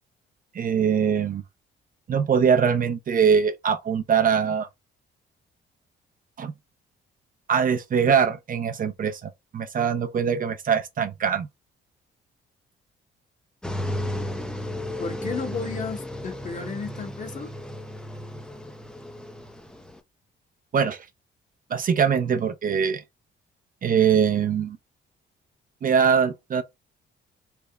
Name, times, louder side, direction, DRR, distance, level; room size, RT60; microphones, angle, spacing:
voice 1, 0.5-1.4 2.1-4.7 6.4-6.5 7.5-11.5 20.7-21.1 21.7-23.0 23.8-24.8 25.8-26.6, right 7 dB, 45° right, 0.6 m, -22 dB
sound 1, 13.6-20.0, left 1 dB, 5° left, 0.5 m, -34 dB
voice 2, 15.0-17.5, left 5 dB, 40° left, 1.1 m, -33 dB
3.4 x 2.0 x 3.6 m
cardioid pair, 90°, 20 cm